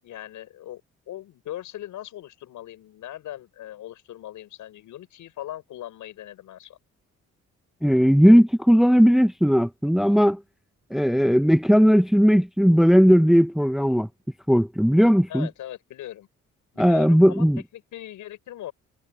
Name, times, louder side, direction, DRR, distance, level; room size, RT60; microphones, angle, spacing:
voice 1, 0.0-6.8 15.3-16.3 16.7-17.5 17.7-18.7, left 13 dB, 80° left, 7.1 m, -39 dB
voice 2, 7.8-10.4 10.9-14.1 14.5-15.5 16.8-17.6, equal, ahead, 1.1 m, -17 dB
cardioid pair, 90°, 30 cm